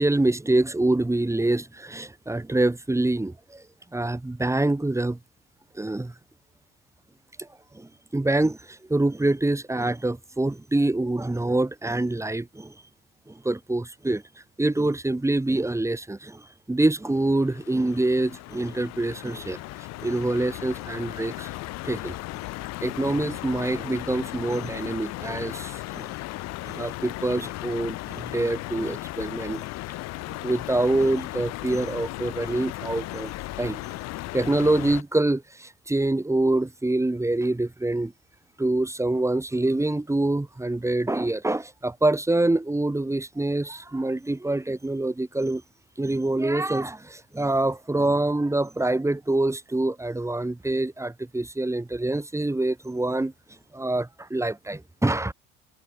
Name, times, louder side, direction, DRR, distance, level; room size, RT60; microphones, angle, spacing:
voice 1, 0.0-3.6 3.9-5.2 5.7-6.1 7.4-7.5 7.7-12.7 13.3-14.2 14.6-19.6 20.0-21.5 21.8-22.1 22.8-26.1 26.6-29.6 30.3-33.3 33.6-33.8 34.3-38.1 38.6-45.6 46.0-53.3 53.7-55.3, right 2 dB, 10° right, 7.1 m, -25 dB
sound 1, 17.1-35.0, left 19 dB, 60° left, 4.0 m, -36 dB
hypercardioid pair, 80°, 29 cm